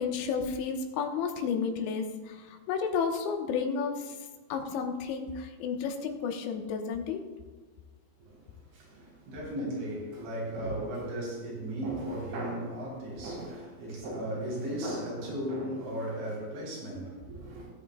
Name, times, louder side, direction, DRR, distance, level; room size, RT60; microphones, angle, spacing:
voice 1, 0.0-4.2 4.5-7.2, left 6 dB, 85° left, 3.2 m, -32 dB
voice 2, 8.7-17.7, right 1 dB, 85° right, 5.8 m, -36 dB
19.0 x 8.8 x 2.2 m
omnidirectional pair, 5.2 m